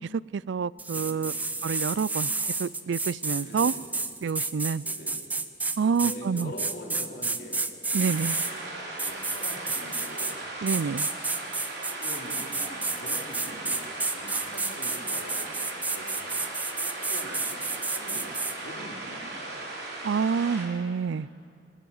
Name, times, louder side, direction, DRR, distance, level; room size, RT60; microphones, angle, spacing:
voice 1, 0.3-1.3 1.6-2.3 2.6-3.7 4.2-4.8 5.8-6.5 7.9-8.4 10.6-11.1 20.0-21.3, right 6 dB, 80° right, 22 dB, 0.4 m, -27 dB
sound 1, 0.8-8.5 9.0-10.4 10.7-18.5, right 3 dB, 10° right, 0.7 m, -31 dB
voice 2, 0.9-1.6 3.4-3.8 4.8-5.2 5.8-10.4 10.9-11.0 11.8-16.4 16.8-19.6, equal, 55° left, 1 dB, 3.5 m, -45 dB
Keyboard (musical), 6.0-8.6, left 4 dB, 25° left, 1.2 m, -48 dB
sound 2, 8.0-20.6, right 2 dB, 65° right, 4.4 m, -38 dB
23.5 x 18.5 x 7.2 m, 2.7 s
head